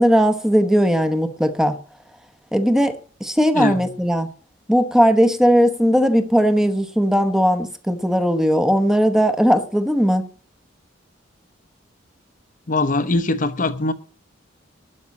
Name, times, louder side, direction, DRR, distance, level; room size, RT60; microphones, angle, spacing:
voice 1, 0.0-1.8 2.5-3.0 3.2-4.3 4.7-10.3, equal, ahead, 0.9 m, -18 dB
voice 2, 12.7-13.9, left 2 dB, 40° left, 0.9 m, -21 dB
12.0 x 5.5 x 8.3 m
head